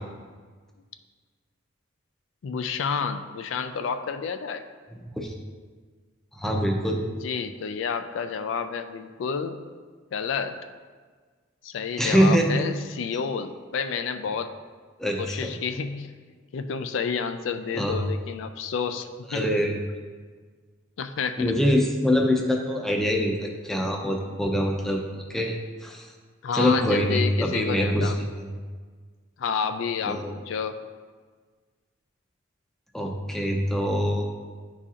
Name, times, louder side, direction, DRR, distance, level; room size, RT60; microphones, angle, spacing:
voice 1, 2.4-4.6 7.0-9.6 10.1-10.6 11.6-14.5 15.2-16.1 16.5-19.6 21.0-21.5 26.4-28.2 29.4-30.7, left 6 dB, 75° left, 9 dB, 0.3 m, -30 dB
voice 2, 4.9-5.3 6.3-7.0 12.0-12.7 15.0-15.5 17.7-18.0 19.3-19.7 21.4-26.1 26.5-28.5 30.0-30.3 32.9-34.3, equal, ahead, 0 dB, 0.5 m, -24 dB
9.8 x 4.1 x 2.4 m, 1.5 s
head